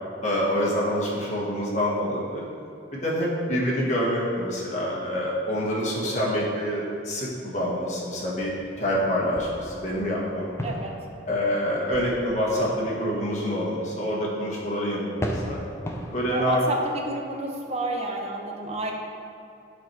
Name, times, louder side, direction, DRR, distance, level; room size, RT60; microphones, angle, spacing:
voice 1, 0.2-2.4 2.9-8.5 8.8-10.6 11.3-15.6 16.1-16.6, equal, 40° left, -5 dB, 1.6 m, -26 dB
sound 1, 8.4-12.8 14.0-14.1 15.2-16.5, equal, 15° left, 0.6 m, -36 dB
voice 2, 10.6-11.0 16.3-18.9, right 1 dB, 35° right, 0 dB, 0.8 m, -29 dB
8.4 x 4.6 x 4.6 m, 2.5 s
head